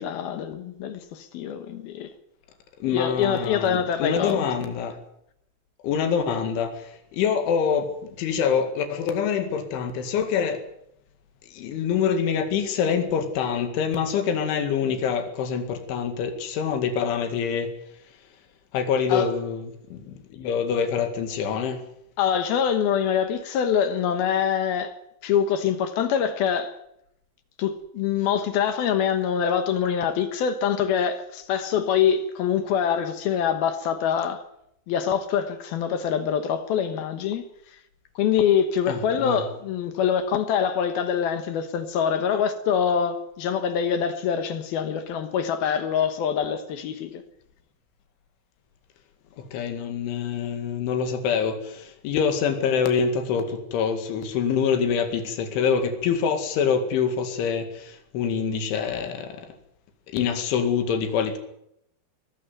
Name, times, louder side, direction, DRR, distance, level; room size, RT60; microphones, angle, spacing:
voice 1, 0.0-2.1 2.9-4.5 19.1-19.3 22.2-25.0 25.2-26.8 27.6-34.4 34.9-37.5 38.2-47.2, left 8 dB, 65° left, 2.8 m, -24 dB
voice 2, 2.8-5.0 5.8-10.6 11.5-17.7 18.7-21.8 38.9-39.5 49.4-59.5 60.1-61.4, left 7 dB, 90° left, 4.6 m, -25 dB
21.5 x 14.0 x 9.5 m
omnidirectional pair, 5.3 m